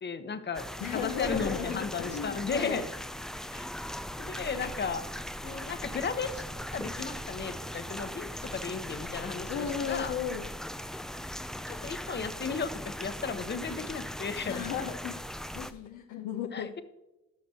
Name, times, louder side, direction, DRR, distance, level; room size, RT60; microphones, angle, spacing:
voice 1, 0.0-0.7 0.9-2.8 3.5-3.7 4.2-5.1 5.4-6.4 6.7-10.2 11.7-14.7 16.5-16.8, left 5 dB, 35° left, 10 dB, 0.9 m, -35 dB
sound 1, 0.5-15.7, equal, ahead, 0.3 m, -39 dB
voice 2, 0.8-2.8 9.5-10.4 14.4-15.2 15.5-16.7, left 8 dB, 90° left, 3 dB, 0.8 m, -35 dB
13.0 x 6.0 x 2.8 m, 0.98 s
cardioid pair, 90°, 30 cm